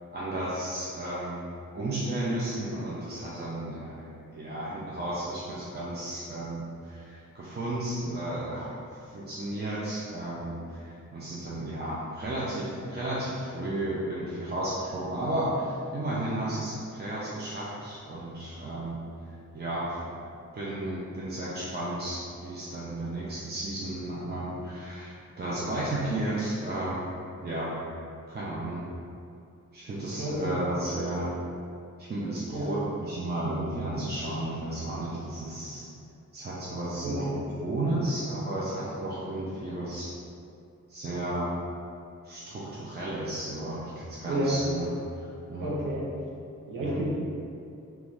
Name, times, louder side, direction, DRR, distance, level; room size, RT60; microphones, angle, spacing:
voice 1, 0.1-1.5 1.7-19.0 19.5-20.1 20.5-27.1 27.4-27.7 28.3-28.8 29.7-31.3 32.1-35.9 36.3-37.3 37.6-40.1 40.9-41.5 42.2-44.9 45.2-45.7 46.8-47.0, right 1 dB, 35° right, -8 dB, 0.4 m, -33 dB
voice 2, 30.2-30.6 32.5-32.7 37.0-37.5 44.2-44.6 45.6-46.1 46.7-47.1, right 1 dB, 85° right, -4 dB, 0.6 m, -30 dB
3.1 x 2.2 x 2.5 m, 2.5 s
wide cardioid pair, 115°, 32 cm